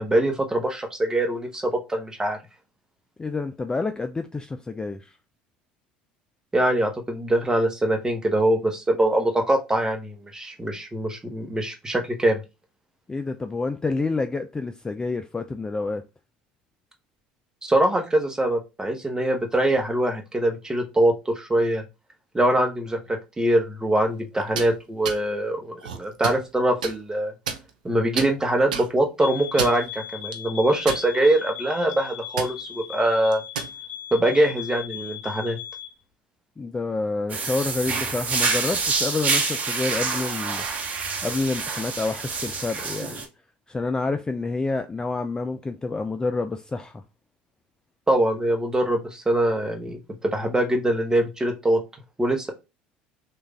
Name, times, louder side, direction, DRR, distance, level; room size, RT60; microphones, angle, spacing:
voice 1, 0.0-2.4 6.5-12.4 17.6-21.8 22.3-27.3 27.8-33.4 34.1-35.6 48.1-51.8 52.2-52.5, right 1 dB, 15° right, 1.0 m, -23 dB
voice 2, 3.2-5.1 13.1-16.0 36.6-40.6 41.2-43.2 43.7-47.0, left 3 dB, 15° left, 0.3 m, -28 dB
sound 1, 24.4-24.7 25.0-25.2 25.8-26.4 26.8-26.9 27.5-27.9 28.2-28.3 28.7-28.9 29.4-29.8 30.3-30.4 30.9-31.4 31.7-31.9 32.4-32.5 33.3-33.7, right 6 dB, 85° right, 0.5 m, -30 dB
sound 2, 29.2-36.0, left 11 dB, 65° left, 0.7 m, -38 dB
sound 3, 37.3-43.2, right 4 dB, 40° right, 1.0 m, -27 dB
3.3 x 2.4 x 3.2 m
hypercardioid pair, 70°, 4 cm